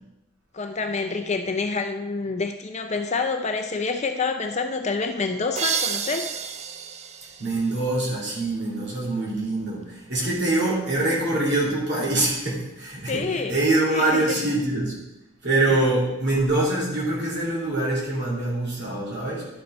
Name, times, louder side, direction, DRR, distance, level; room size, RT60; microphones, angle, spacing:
voice 1, 0.5-6.3 13.1-13.6 13.9-14.4 15.7-15.8, left 4 dB, 30° left, 6 dB, 0.5 m, -27 dB
sound 1, 5.6-8.3, right 7 dB, 30° right, 0.4 m, -31 dB
voice 2, 7.4-13.2 13.5-15.0 15.4-19.5, right 2 dB, 50° right, -5 dB, 2.7 m, -24 dB
11.5 x 5.8 x 4.2 m, 0.96 s
head